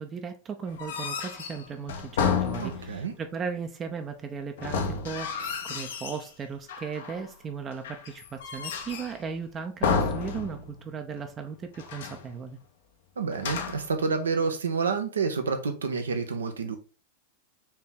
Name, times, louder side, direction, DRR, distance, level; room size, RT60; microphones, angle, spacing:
voice 1, 0.0-12.6, right 6 dB, 25° right, 0.6 m, -37 dB
sound 1, 0.7-3.1 4.6-6.3 6.7-7.3 7.8-9.2 9.8-10.9 11.2-11.3 11.7-12.3 13.3-14.0, left 6 dB, 65° left, 0.8 m, -31 dB
voice 2, 2.6-3.1 13.2-16.8, right 5 dB, 80° right, 0.8 m, -29 dB
4.4 x 3.0 x 3.7 m
hypercardioid pair, 95°, 0 cm